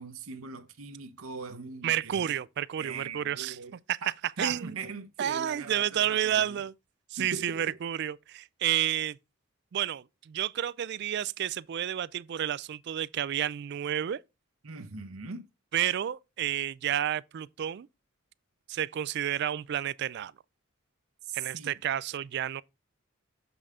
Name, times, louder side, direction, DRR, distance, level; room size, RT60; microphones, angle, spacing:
voice 1, 0.0-2.3 2.8-3.7 4.0-6.6 7.2-7.8 14.6-15.5 21.2-21.7, right 4 dB, 80° right, 0.8 m, -40 dB
voice 2, 1.8-3.6 3.9-4.0 4.4-4.8 5.2-6.7 7.1-9.2 9.7-14.2 15.7-17.9 18.7-20.3 21.3-22.6, right 10 dB, 50° right, 0.3 m, -30 dB
7.0 x 5.3 x 3.6 m
head